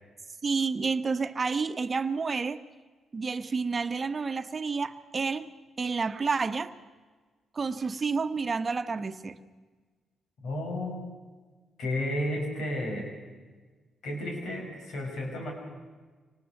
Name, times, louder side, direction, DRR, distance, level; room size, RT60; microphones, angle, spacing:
voice 1, 0.4-2.6 3.1-5.5 5.8-6.7 7.5-9.4, right 4 dB, 40° right, 11 dB, 1.1 m, -29 dB
voice 2, 10.4-11.0 11.8-13.1 14.0-15.5, left 1 dB, 75° left, 1 dB, 6.5 m, -32 dB
25.0 x 19.5 x 6.6 m, 1.4 s
supercardioid pair, 55°, 0 cm